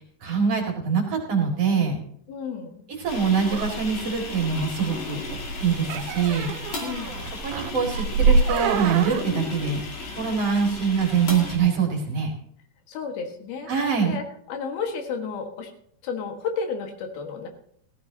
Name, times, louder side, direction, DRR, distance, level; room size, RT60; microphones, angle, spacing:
voice 1, 0.2-2.0 3.0-5.2 5.6-6.5 7.4-9.8 10.2-12.3 13.7-14.2, right 6 dB, 45° right, 1 dB, 2.7 m, -24 dB
voice 2, 2.3-2.8 6.8-7.2 12.9-13.7 14.0-15.7 16.0-17.5, left 5 dB, 80° left, 4 dB, 3.5 m, -32 dB
sound 1, 3.1-11.6, left 3 dB, 50° left, 3.2 m, -35 dB
sound 2, 3.5-9.2, right 4 dB, 85° right, 2.6 m, -26 dB
15.0 x 15.0 x 2.8 m, 0.65 s
omnidirectional pair, 4.3 m